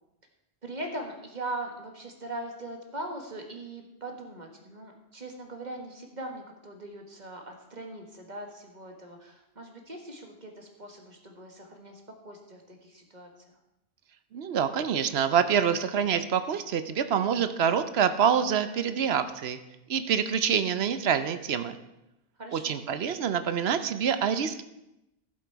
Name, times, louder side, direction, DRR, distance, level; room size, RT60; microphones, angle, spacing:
voice 1, 0.6-13.6 22.4-22.8, right 1 dB, 45° right, 2 dB, 1.7 m, -40 dB
voice 2, 14.3-19.6 19.9-21.8 22.5-24.6, right 7 dB, 75° right, 11 dB, 0.9 m, -26 dB
14.0 x 7.6 x 4.6 m, 0.92 s
omnidirectional pair, 1.1 m